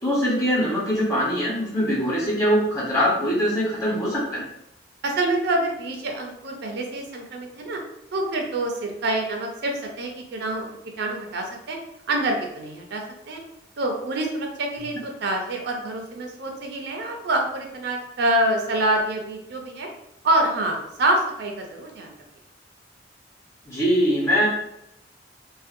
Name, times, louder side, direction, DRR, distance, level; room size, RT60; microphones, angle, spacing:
voice 1, 0.0-4.4 23.7-24.5, equal, 20° left, -7 dB, 1.0 m, -22 dB
voice 2, 5.0-7.8 8.1-10.7 11.0-11.8 12.1-13.4 13.8-19.9 20.2-22.1, right 1 dB, 65° right, 2 dB, 0.4 m, -26 dB
2.5 x 2.1 x 2.5 m, 0.81 s
head